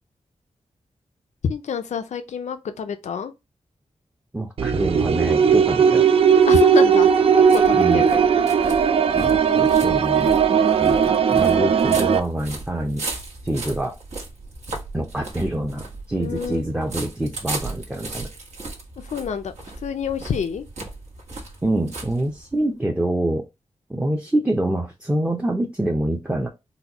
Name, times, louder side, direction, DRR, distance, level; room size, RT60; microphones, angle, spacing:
voice 1, 1.4-3.3 6.5-7.1 7.3-8.2 16.2-16.6 19.1-19.5 19.8-20.6, left 7 dB, 85° left, 0.4 m, -27 dB
voice 2, 4.3-6.1 7.8-8.1 9.1-10.3 10.8-13.1 13.4-14.0 14.9-18.3 21.6-23.4 23.9-26.5, right 1 dB, 10° right, 0.6 m, -25 dB
sound 1, 4.6-12.2, right 7 dB, 55° right, 0.4 m, -17 dB
sound 2, 6.2-22.7, right 3 dB, 75° right, 1.3 m, -36 dB
4.0 x 2.3 x 2.9 m
wide cardioid pair, 110°, 12 cm